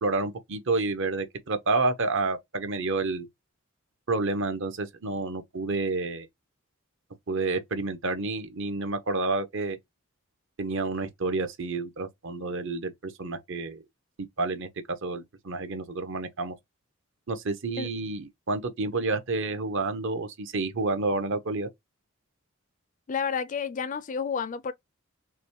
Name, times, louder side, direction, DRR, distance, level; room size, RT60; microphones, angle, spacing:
voice 1, 0.0-3.3 4.1-6.3 7.3-9.8 10.6-13.8 14.4-14.7 15.0-16.5 17.3-21.7, right 3 dB, 65° right, 0.9 m, -29 dB
voice 2, 23.1-24.7, left 6 dB, 40° left, 0.4 m, -30 dB
5.9 x 2.2 x 3.0 m
head